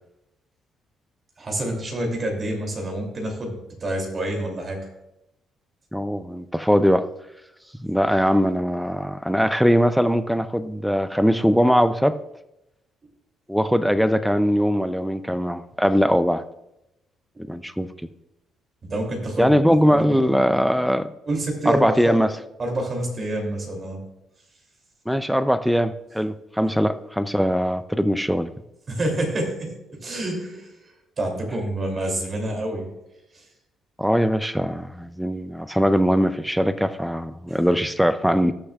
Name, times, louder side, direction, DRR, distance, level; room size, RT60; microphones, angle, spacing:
voice 1, 1.4-3.5 3.8-4.8 18.8-19.5 19.9-20.6 21.3-22.2 22.6-24.0 28.9-29.7 30.0-30.7 31.2-32.9 33.3-33.4, right 1 dB, 35° right, 1 dB, 2.7 m, -27 dB
voice 2, 5.9-7.1 7.8-12.2 13.5-16.4 17.5-17.9 19.4-21.1 21.7-22.3 25.1-28.5 34.0-38.5, equal, ahead, 12 dB, 0.4 m, -21 dB
18.5 x 6.6 x 2.4 m, 0.89 s
cardioid pair, 115°, 0 cm